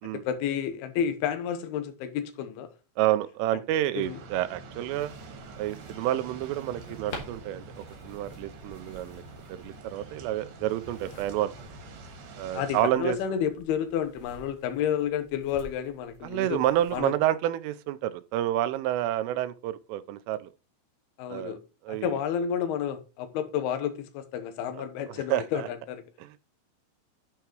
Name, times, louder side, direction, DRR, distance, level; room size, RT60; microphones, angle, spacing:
voice 1, 0.0-2.7 4.0-4.2 12.5-16.6 16.9-17.1 21.2-21.6 21.9-26.0, left 8 dB, 75° left, 2.5 m, -30 dB
voice 2, 3.0-5.1 5.6-9.2 9.5-11.5 12.4-13.2 16.2-20.5 21.3-21.5 21.8-22.2 24.7-25.7 26.2-26.4, right 13 dB, 90° right, 3.2 m, -29 dB
sound 1, 4.0-12.8, right 3 dB, 65° right, 3.6 m, -46 dB
sound 2, 4.9-17.0, left 1 dB, 55° left, 2.9 m, -50 dB
9.0 x 4.8 x 4.4 m
omnidirectional pair, 5.6 m